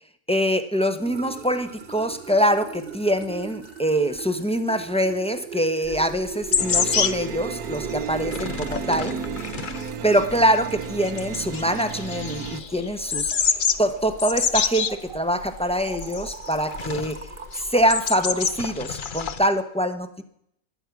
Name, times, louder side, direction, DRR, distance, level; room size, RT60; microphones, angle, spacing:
voice 1, 0.3-9.2 10.0-17.3 17.5-20.2, equal, 5° left, 8 dB, 0.8 m, -24 dB
sound 1, 1.0-18.6, right 6 dB, 45° right, 1.4 m, -40 dB
sound 2, 5.8-19.5, left 6 dB, 45° left, 0.7 m, -28 dB
sound 3, 6.6-12.6, right 8 dB, 85° right, 1.2 m, -34 dB
22.5 x 9.0 x 6.0 m, 0.73 s
omnidirectional pair, 1.5 m